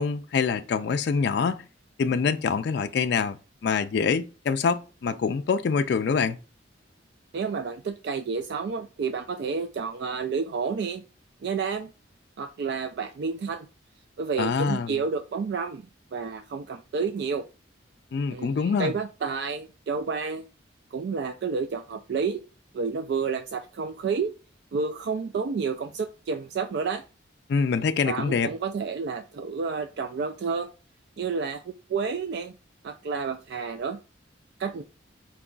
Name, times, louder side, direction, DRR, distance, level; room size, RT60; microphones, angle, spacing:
voice 1, 0.0-1.7 2.0-3.4 3.6-6.4 14.4-15.0 18.1-18.9 27.5-28.5, left 5 dB, 60° left, 0.3 m, -25 dB
voice 2, 7.3-11.0 11.4-11.9 12.4-13.7 14.2-15.9 16.1-17.4 18.3-20.4 20.9-22.4 22.7-24.3 24.7-27.0 28.1-30.7 31.2-32.5 32.8-34.0 34.6-34.8, right 5 dB, 60° right, 0.3 m, -30 dB
4.6 x 2.3 x 3.7 m
head